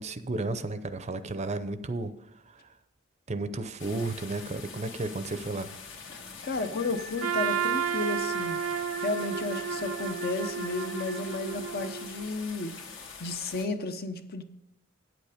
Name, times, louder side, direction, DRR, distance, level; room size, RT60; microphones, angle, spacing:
voice 1, 0.0-2.7 3.3-5.7, right 2 dB, 35° right, 12 dB, 0.6 m, -33 dB
sound 1, 3.8-13.7, left 5 dB, 65° left, 1.6 m, -44 dB
Wind instrument woodwind instrument, 6.4-11.2, equal, 90° left, 1.0 m, -45 dB
voice 2, 6.4-8.6 9.0-12.7 13.2-14.4, left 2 dB, 50° left, 9 dB, 0.8 m, -33 dB
Trumpet, 7.2-12.3, right 7 dB, 85° right, 0.5 m, -32 dB
9.2 x 8.1 x 5.0 m, 0.83 s
head